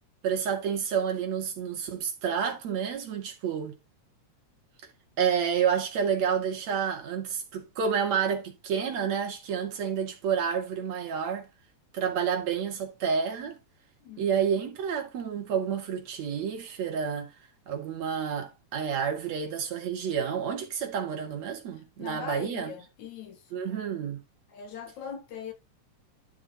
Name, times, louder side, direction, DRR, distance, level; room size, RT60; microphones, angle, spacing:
voice 1, 0.2-3.8 5.2-11.5 11.9-13.6 14.2-17.3 17.7-22.7 23.5-24.2, right 7 dB, 65° right, 3.4 m, -29 dB
voice 2, 22.0-23.6 24.5-25.5, left 7 dB, 70° left, 3.1 m, -41 dB
12.0 x 6.9 x 2.8 m
omnidirectional pair, 3.5 m